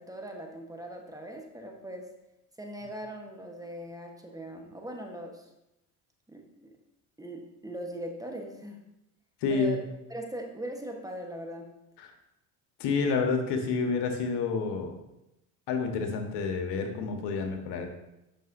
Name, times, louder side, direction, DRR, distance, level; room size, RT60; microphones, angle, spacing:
voice 1, 0.0-2.1 2.6-5.5 6.3-6.7 7.2-8.8 9.5-9.8 10.1-11.7, right 1 dB, 10° right, 2 dB, 1.1 m, -40 dB
voice 2, 9.4-9.8 12.0-12.1 12.8-14.9 15.7-17.9, left 4 dB, 65° left, 4 dB, 1.3 m, -29 dB
9.1 x 6.0 x 2.6 m, 0.89 s
supercardioid pair, 80°, 44 cm